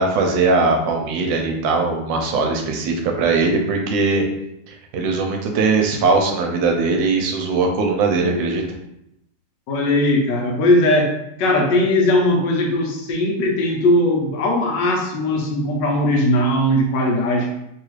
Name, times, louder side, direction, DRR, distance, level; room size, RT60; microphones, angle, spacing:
voice 1, 0.0-4.2 4.7-8.6, right 3 dB, 80° right, 3 dB, 1.3 m, -20 dB
voice 2, 9.7-11.1 11.4-17.5, left 1 dB, 75° left, 1 dB, 1.3 m, -19 dB
3.3 x 2.4 x 3.1 m, 0.81 s
omnidirectional pair, 2.0 m